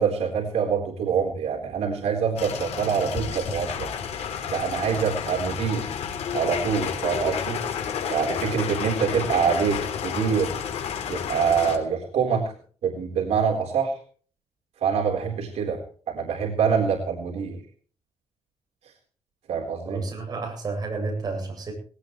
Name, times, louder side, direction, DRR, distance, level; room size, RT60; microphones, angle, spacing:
voice 1, 0.0-3.9 4.5-5.9 6.3-7.6 8.1-10.6 11.1-12.5 12.8-14.0 14.8-17.6 19.5-20.0, right 6 dB, 80° right, 0 dB, 4.0 m, -25 dB
sound 1, 2.4-11.8, left 7 dB, 80° left, 3.3 m, -31 dB
voice 2, 19.9-21.7, right 3 dB, 35° right, 1 dB, 7.7 m, -31 dB
19.5 x 17.5 x 3.2 m, 0.44 s
wide cardioid pair, 160°, 11 cm